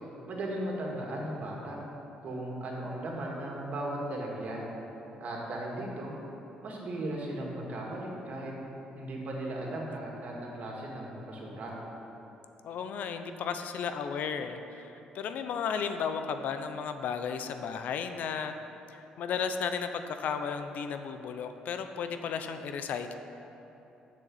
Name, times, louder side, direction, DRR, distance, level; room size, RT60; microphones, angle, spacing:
voice 1, 0.3-1.8 2.2-4.7 5.2-6.1 6.6-8.5 9.0-11.8, right 1 dB, 55° right, -2 dB, 2.2 m, -36 dB
voice 2, 12.6-18.5 18.9-23.1, left 6 dB, 70° left, 8 dB, 0.6 m, -34 dB
6.9 x 6.5 x 7.8 m, 3.0 s
cardioid pair, 85°, 3 cm